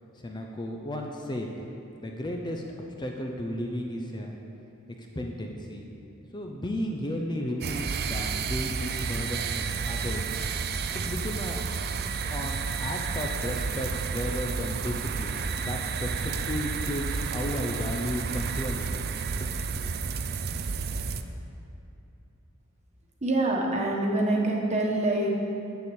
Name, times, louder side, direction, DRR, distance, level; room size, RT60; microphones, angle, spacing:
voice 1, 0.1-1.7 2.0-2.6 3.0-4.4 4.9-5.9 6.3-10.3 10.9-11.6 12.3-19.1 19.4-19.5 19.8-19.9, left 1 dB, 20° left, 1 dB, 0.6 m, -34 dB
sound 1, 7.6-21.2, right 5 dB, 50° right, 0.4 m, -31 dB
voice 2, 23.2-25.3, right 2 dB, 30° right, -1 dB, 1.4 m, -25 dB
7.1 x 7.0 x 8.0 m, 2.9 s
head